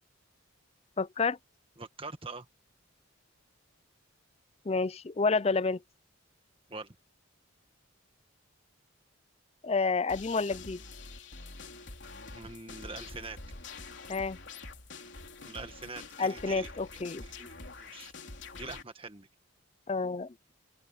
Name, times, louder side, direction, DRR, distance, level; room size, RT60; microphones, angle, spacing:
voice 1, 1.0-1.4 4.7-5.8 9.6-10.8 14.1-14.4 16.2-17.5 19.9-20.3, left 4 dB, 30° left, 0.4 m, -29 dB
voice 2, 1.8-2.5 6.7-6.9 12.3-13.4 15.4-16.7 17.8-18.1 18.5-19.3, right 3 dB, 25° right, 1.7 m, -43 dB
sound 1, 10.1-18.8, left 3 dB, 55° left, 3.8 m, -46 dB
open air
head